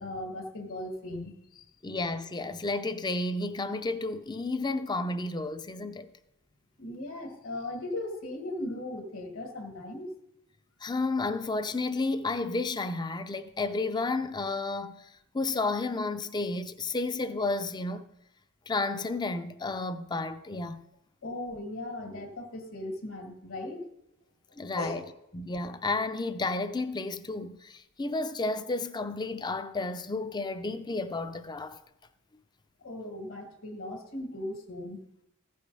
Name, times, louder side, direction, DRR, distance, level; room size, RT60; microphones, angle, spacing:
voice 1, 0.0-1.7 6.8-10.1 21.2-23.8 24.8-25.0 32.8-35.0, left 1 dB, 65° left, 1.7 m, -38 dB
voice 2, 1.8-6.1 10.8-18.1 18.7-20.8 24.6-25.0 25.3-31.8, left 3 dB, 20° left, 0.5 m, -32 dB
15.0 x 5.0 x 5.4 m
head